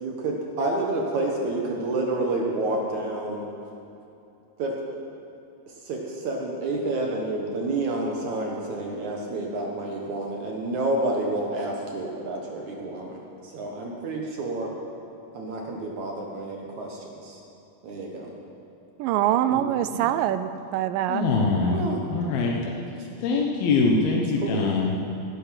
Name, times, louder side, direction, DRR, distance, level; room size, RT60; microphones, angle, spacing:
voice 1, 0.0-3.5 4.6-4.8 5.8-14.7 15.3-17.4 17.8-18.3 19.5-19.6 19.9-20.1 21.7-22.0 22.9-23.1 24.4-24.6, right 2 dB, 60° right, 0 dB, 2.5 m, -29 dB
voice 2, 19.0-21.2, right 12 dB, 80° right, 12 dB, 2.1 m, -24 dB
voice 3, 21.1-22.5 23.2-25.0, left 3 dB, 80° left, -1 dB, 3.0 m, -23 dB
17.5 x 12.0 x 5.9 m, 2.8 s
omnidirectional pair, 4.2 m